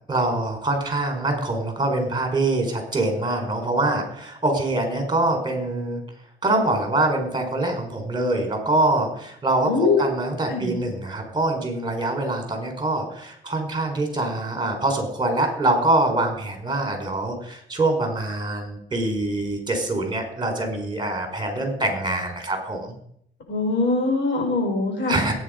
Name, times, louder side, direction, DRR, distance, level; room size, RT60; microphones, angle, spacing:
voice 1, 0.1-6.0 6.4-22.9 25.1-25.3, right 2 dB, 20° right, 4 dB, 4.8 m, -24 dB
voice 2, 9.7-10.0 10.5-10.7 23.5-25.2, left 3 dB, 65° left, 1 dB, 6.5 m, -22 dB
19.5 x 9.7 x 5.3 m, 0.69 s
cardioid pair, 90°, 20 cm